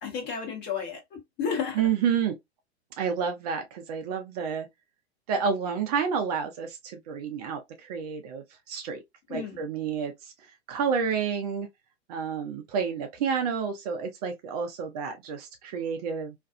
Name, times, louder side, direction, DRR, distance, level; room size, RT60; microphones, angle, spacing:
voice 1, 0.0-1.8 9.3-9.6, left 6 dB, 35° left, 1.2 m, -32 dB
voice 2, 1.8-2.4 3.0-4.7 5.3-9.0 9.3-10.3 10.7-11.7 12.1-16.3, right 6 dB, 35° right, 0.5 m, -29 dB
2.5 x 2.3 x 2.3 m
figure-of-eight pair, 100°, 34 cm